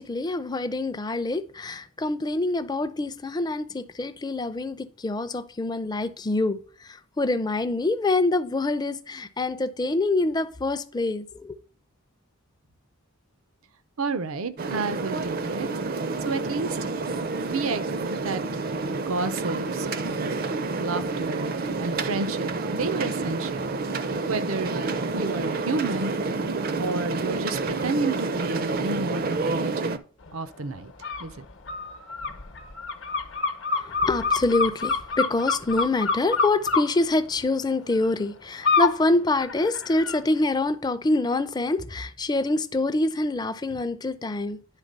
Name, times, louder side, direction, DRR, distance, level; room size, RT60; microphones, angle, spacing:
voice 1, 0.0-11.6 33.8-44.6, left 2 dB, 20° left, 0.4 m, -26 dB
voice 2, 14.0-15.9 16.2-16.8 17.4-18.4 18.8-20.4 20.8-23.8 24.3-26.1 26.8-30.0 30.3-30.9 31.2-31.5, right 3 dB, 85° right, 0.7 m, -31 dB
sound 1, 14.6-30.0, right 3 dB, 45° right, 0.5 m, -29 dB
sound 2, 31.0-31.2 31.7-36.8 38.6-39.0 39.4-40.2, left 5 dB, 60° left, 0.9 m, -25 dB
10.0 x 3.6 x 5.3 m
head